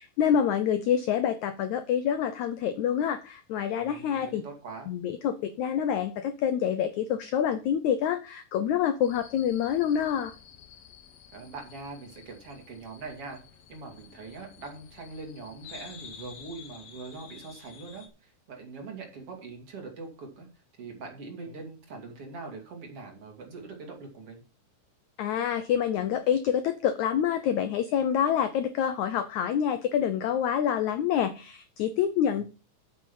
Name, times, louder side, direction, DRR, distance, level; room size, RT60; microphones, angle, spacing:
voice 1, 0.2-4.4 4.9-10.3 25.2-32.4, left 9 dB, 85° left, 10 dB, 1.6 m, -27 dB
voice 2, 3.8-4.9 11.3-13.4 13.7-24.4 32.3-32.4, right 3 dB, 40° right, 1 dB, 3.2 m, -42 dB
sound 1, 9.0-18.1, left 8 dB, 70° left, 3.1 m, -51 dB
8.8 x 8.4 x 5.5 m, 0.34 s
omnidirectional pair, 4.4 m